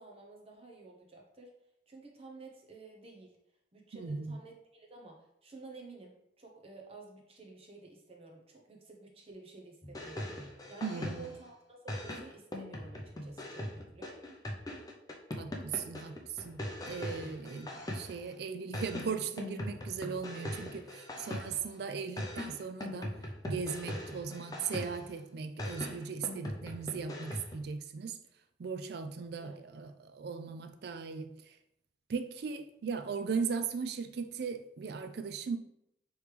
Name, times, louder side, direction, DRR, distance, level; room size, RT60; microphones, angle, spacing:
voice 1, 0.0-1.5 1.9-3.3 3.7-10.3 10.7-11.5 11.8-14.2 29.4-29.6, right 3 dB, 35° right, 0 dB, 0.7 m, -51 dB
voice 2, 3.9-4.4 10.8-11.3 15.4-16.6 16.9-23.1 23.4-28.2 28.6-31.5 32.1-35.6, right 5 dB, 60° right, 9 dB, 0.4 m, -38 dB
sound 1, 9.8-11.5 11.9-18.3 18.7-21.8 22.2-25.2 25.6-27.6, left 1 dB, 20° left, 0.5 m, -41 dB
5.0 x 3.2 x 3.2 m, 0.81 s
head